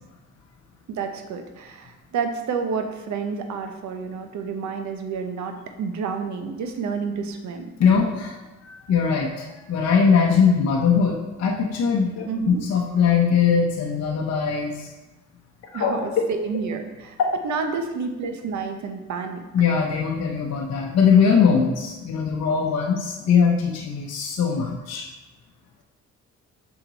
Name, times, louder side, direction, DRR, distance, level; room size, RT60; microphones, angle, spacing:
voice 1, 0.9-7.6 12.3-12.6 15.7-17.2 17.4-19.4, right 5 dB, 70° right, 6 dB, 0.8 m, -29 dB
voice 2, 7.8-14.9 15.7-16.2 19.5-25.1, left 6 dB, 60° left, -1 dB, 0.8 m, -21 dB
5.9 x 4.4 x 3.9 m, 1.1 s
cardioid pair, 90°, 30 cm